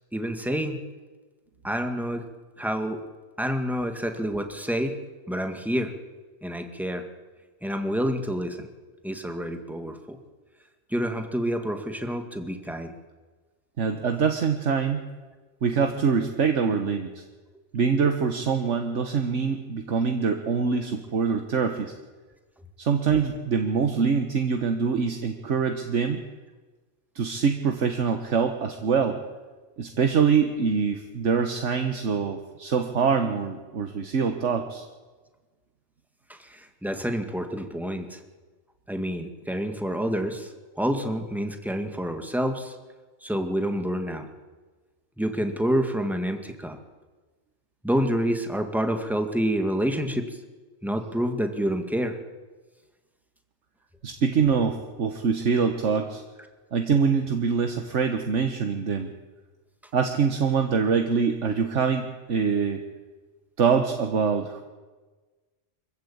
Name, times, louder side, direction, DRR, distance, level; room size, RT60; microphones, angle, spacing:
voice 1, 0.1-0.8 1.6-2.2 2.6-3.0 3.4-5.0 5.3-5.9 6.4-7.1 7.6-8.7 9.0-10.2 10.9-12.9 36.3-38.2 38.9-40.5 40.8-42.8 43.2-44.3 45.2-46.8 47.8-50.4 50.8-52.2, equal, ahead, 5 dB, 1.9 m, -28 dB
voice 2, 13.8-15.1 15.6-17.2 17.7-21.9 22.8-26.2 27.1-29.2 29.8-34.8 54.0-56.2 56.7-59.1 59.9-62.8 63.6-64.6, right 6 dB, 70° right, 6 dB, 1.6 m, -24 dB
25.5 x 14.5 x 8.6 m, 1.3 s
omnidirectional pair, 1.3 m